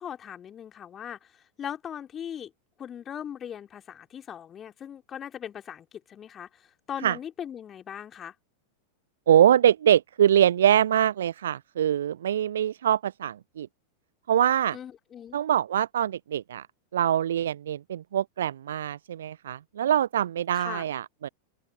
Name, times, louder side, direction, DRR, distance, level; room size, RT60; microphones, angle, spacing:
voice 1, 0.0-2.5 2.8-8.3 14.7-15.4 20.5-20.8, left 9 dB, 25° left, 2.9 m, -39 dB
voice 2, 9.3-13.7 14.3-14.8 15.3-16.7 16.9-21.3, right 10 dB, 60° right, 0.5 m, -23 dB
open air
figure-of-eight pair, 90°, 0 cm